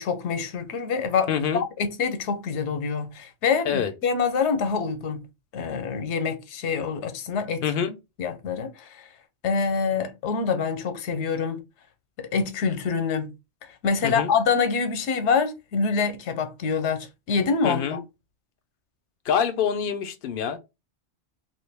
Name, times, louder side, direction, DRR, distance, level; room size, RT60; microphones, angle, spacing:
voice 1, 0.0-5.2 5.5-7.6 8.2-9.1 9.4-11.6 12.2-13.3 13.8-18.0, left 5 dB, 90° left, 0.9 m, -26 dB
voice 2, 1.3-1.6 3.6-3.9 7.6-7.9 14.0-14.3 17.6-18.0 19.3-20.6, left 7 dB, 60° left, 0.7 m, -25 dB
3.1 x 2.5 x 3.3 m
omnidirectional pair, 1.1 m